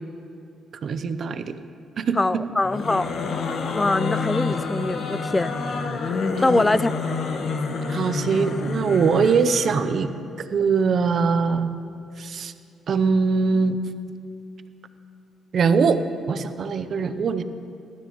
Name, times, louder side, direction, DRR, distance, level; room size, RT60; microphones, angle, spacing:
voice 1, 0.8-1.6 2.0-2.4 4.5-4.6 6.4-6.6 7.9-10.1 10.5-11.7 12.2-12.5 12.9-13.8 15.5-17.4, right 5 dB, 55° right, 11 dB, 0.7 m, -22 dB
voice 2, 2.1-3.1 3.7-5.5 5.8-7.1, left 2 dB, 20° left, 17 dB, 0.3 m, -23 dB
sound 1, 2.6-9.9, left 4 dB, 60° left, 1.2 m, -28 dB
19.5 x 12.5 x 3.1 m, 2.6 s
cardioid pair, 90°, 0 cm